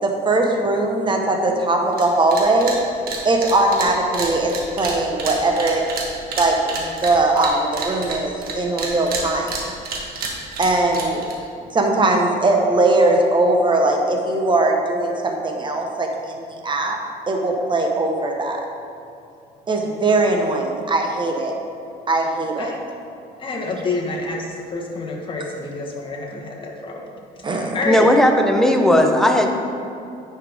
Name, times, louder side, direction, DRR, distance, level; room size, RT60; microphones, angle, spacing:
voice 1, 0.0-2.7 3.2-5.8 6.4-6.7 7.0-9.7 10.6-11.2 11.7-17.0 17.3-18.6 19.7-21.5 22.1-22.7 27.4-27.8, right 2 dB, 30° right, 2 dB, 1.1 m, -20 dB
sound 1, 1.9-2.1 2.3-2.8 3.1-8.5 8.8-11.4, right 4 dB, 60° right, 1.4 m, -29 dB
voice 2, 23.4-28.1, left 3 dB, 30° left, -1 dB, 1.4 m, -28 dB
voice 3, 27.9-29.5, left 1 dB, 5° left, 3 dB, 0.8 m, -15 dB
9.7 x 5.7 x 3.6 m, 2.6 s
cardioid pair, 110°, 17 cm